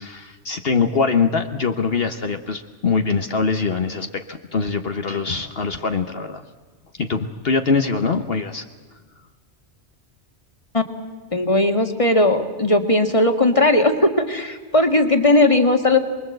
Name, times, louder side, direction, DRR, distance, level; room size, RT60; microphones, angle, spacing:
voice 1, 0.0-6.4 7.0-8.6, left 4 dB, 55° left, 6 dB, 1.3 m, -23 dB
voice 2, 11.3-16.0, left 2 dB, 30° left, 5 dB, 2.0 m, -17 dB
28.0 x 22.0 x 7.9 m, 1.4 s
omnidirectional pair, 1.2 m